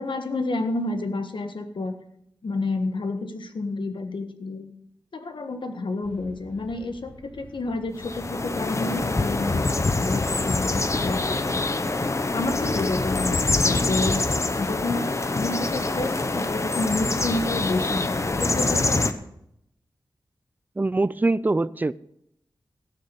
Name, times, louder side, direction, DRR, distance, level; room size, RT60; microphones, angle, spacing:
voice 1, 0.0-2.0 2.4-4.7 5.1-11.6 12.3-14.2 14.6-19.1, left 2 dB, 75° left, 1.5 m, -30 dB
sound 1, 6.0-11.7, equal, 15° left, 4.4 m, -49 dB
sound 2, 8.0-19.1, left 3 dB, 35° left, 0.9 m, -25 dB
voice 2, 20.8-21.9, right 2 dB, 20° right, 0.4 m, -23 dB
16.5 x 6.7 x 7.0 m
wide cardioid pair, 105°, 8 cm